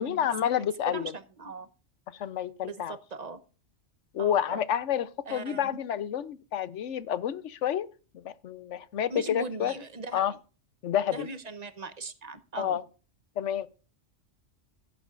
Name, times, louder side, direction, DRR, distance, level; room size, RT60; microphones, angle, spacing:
voice 1, 0.0-1.1 2.1-2.9 4.1-7.9 8.1-9.7 10.1-10.3 10.8-11.3 12.6-12.8 13.4-13.7, left 9 dB, 70° left, 1.0 m, -29 dB
voice 2, 0.6-1.7 2.6-3.4 4.2-4.7 5.3-5.7 9.1-10.4 11.1-12.8, right 3 dB, 35° right, 0.9 m, -40 dB
16.0 x 8.6 x 2.5 m
omnidirectional pair, 1.3 m